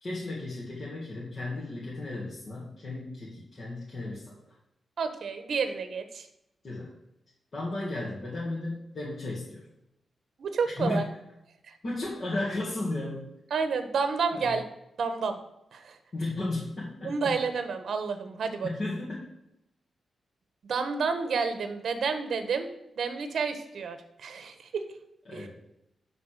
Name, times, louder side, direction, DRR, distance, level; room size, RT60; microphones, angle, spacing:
voice 1, 0.0-4.3 6.6-6.9 7.5-9.6 10.8-11.0 11.8-13.3 14.3-14.6 16.1-17.3 18.6-19.3 25.3-25.5, left 2 dB, 45° left, -6 dB, 2.1 m, -34 dB
voice 2, 5.0-6.3 10.4-11.0 13.5-14.6 15.0-15.4 15.7-16.0 17.0-18.7 20.7-22.7 23.0-24.8 25.3-25.5, right 5 dB, 65° right, 8 dB, 1.1 m, -30 dB
10.0 x 4.1 x 6.6 m, 0.84 s
wide cardioid pair, 125°, 0 cm